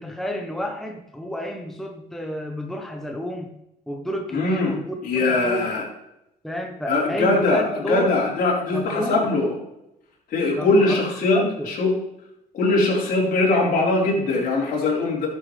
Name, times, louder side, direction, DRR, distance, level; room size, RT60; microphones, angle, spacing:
voice 1, 0.0-3.6 3.9-5.7 6.4-8.2 8.7-9.3 10.5-11.0 11.3-11.7, equal, ahead, 2 dB, 1.0 m, -30 dB
voice 2, 4.3-4.7 5.0-5.8 6.9-7.6 7.9-9.6 10.3-12.0 12.5-15.3, left 2 dB, 60° left, -3 dB, 4.1 m, -21 dB
12.0 x 7.3 x 3.3 m, 0.85 s
cardioid pair, 110°, 17 cm